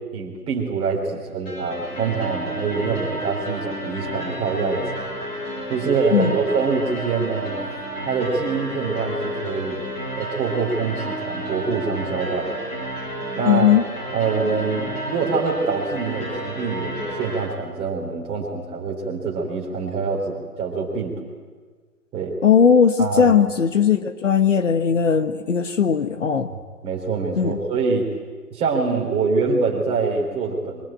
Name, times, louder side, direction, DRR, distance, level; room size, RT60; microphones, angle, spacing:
voice 1, 0.1-4.8 5.7-7.5 8.1-9.8 10.2-12.6 13.4-13.7 14.1-21.3 22.1-22.3 23.0-23.4 26.8-28.1 28.5-30.8, right 4 dB, 10° right, -1 dB, 3.6 m, -25 dB
sound 1, 1.5-17.5, right 1 dB, 15° left, 6.5 m, -31 dB
voice 2, 13.5-13.8 22.4-26.5 27.3-27.6, left 7 dB, 50° left, 9 dB, 1.4 m, -18 dB
24.0 x 22.0 x 9.1 m, 1.5 s
figure-of-eight pair, 145°, 48 cm